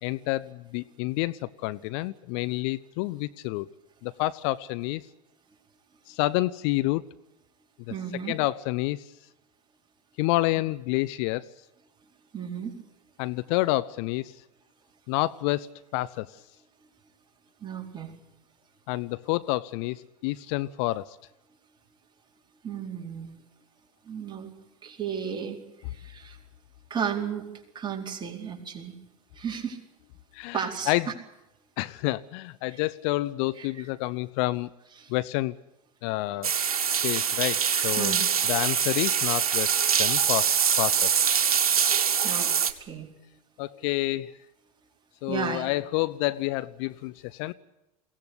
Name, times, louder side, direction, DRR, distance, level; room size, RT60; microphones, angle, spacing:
voice 1, 0.0-3.7 4.0-5.0 6.1-7.0 8.3-9.0 10.2-11.5 13.2-14.3 15.1-15.7 15.9-16.3 18.9-21.2 30.3-31.1 31.8-34.7 35.1-35.5 36.0-36.5 37.0-38.1 38.5-39.7 40.0-41.1 43.6-44.3 45.2-47.5, left 19 dB, 50° left, 16 dB, 0.8 m, -28 dB
voice 2, 7.9-8.4 12.3-12.7 17.6-18.1 22.6-23.3 24.0-24.5 24.8-25.6 25.9-26.4 26.9-29.0 29.3-29.8 30.5-30.9 32.7-32.8 33.6-33.7 35.0-35.1 38.0-38.3 42.2-42.5 42.8-43.1 45.3-45.7, right 7 dB, 25° right, 1 dB, 4.4 m, -33 dB
sound 1, 36.4-42.7, right 7 dB, 75° right, 1.7 m, -24 dB
22.0 x 17.5 x 8.1 m, 0.96 s
figure-of-eight pair, 85°, 19 cm